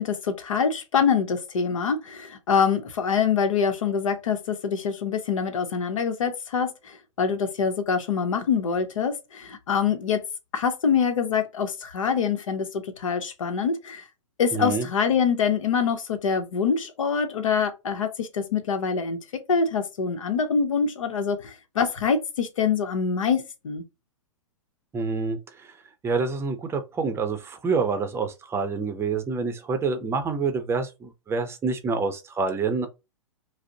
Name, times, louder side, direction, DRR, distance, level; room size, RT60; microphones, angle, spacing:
voice 1, 0.0-10.2 10.5-14.0 14.4-19.2 19.5-23.8, left 6 dB, 75° left, 0.9 m, -25 dB
voice 2, 14.5-14.9 24.9-25.8 26.0-32.9, right 4 dB, 15° right, 0.6 m, -27 dB
4.9 x 2.0 x 2.8 m
hypercardioid pair, 115°, 17 cm